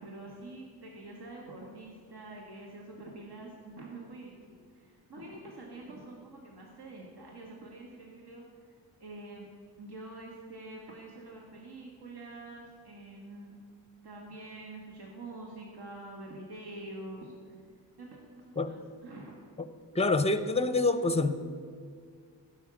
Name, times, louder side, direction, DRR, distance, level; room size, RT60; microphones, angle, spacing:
voice 1, 0.0-8.7 9.0-9.5 9.8-13.5 14.0-17.6 18.0-19.4, right 2 dB, 50° right, -2 dB, 1.8 m, -46 dB
voice 2, 19.9-21.4, left 3 dB, 15° left, 12 dB, 0.7 m, -26 dB
11.5 x 5.6 x 7.2 m, 2.1 s
cardioid pair, 40°, 48 cm